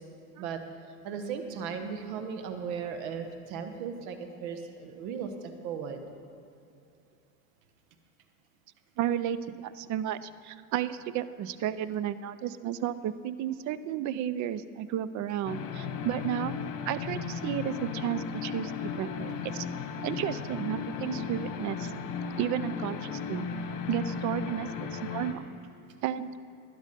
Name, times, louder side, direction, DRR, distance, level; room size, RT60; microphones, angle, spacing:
voice 1, 1.0-6.0, right 6 dB, 70° right, 6 dB, 1.4 m, -36 dB
voice 2, 9.0-16.6 16.9-19.7 20.0-21.9 22.4-23.5 23.9-25.4 26.0-26.4, right 10 dB, 45° right, 15 dB, 0.6 m, -33 dB
sound 1, 15.4-25.3, left 6 dB, 45° left, 1.5 m, -36 dB
12.0 x 10.5 x 5.4 m, 2.7 s
supercardioid pair, 100°, 43 cm